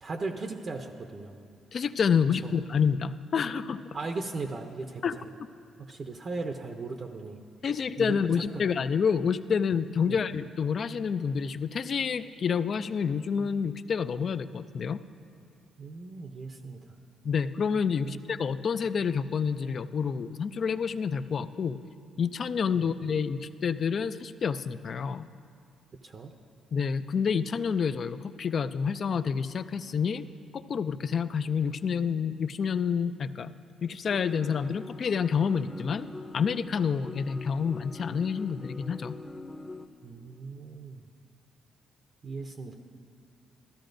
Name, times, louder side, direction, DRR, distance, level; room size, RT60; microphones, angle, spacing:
voice 1, 0.0-1.3 2.4-2.5 3.9-5.0 5.9-7.4 8.0-8.8 10.1-10.2 15.8-16.8 18.0-18.2 22.7-22.9 26.0-26.3 40.0-41.0 42.2-42.8, right 3 dB, 45° right, 4 dB, 0.6 m, -37 dB
voice 2, 1.7-3.8 5.0-5.1 7.6-15.0 17.2-21.8 22.2-25.3 26.7-30.2 30.5-33.5 33.8-36.1 36.3-39.2, left 6 dB, 50° left, 13 dB, 0.4 m, -28 dB
sound 1, 34.1-39.9, left 2 dB, 10° left, 0.7 m, -43 dB
14.0 x 13.0 x 2.6 m, 2.3 s
cardioid pair, 90°, 0 cm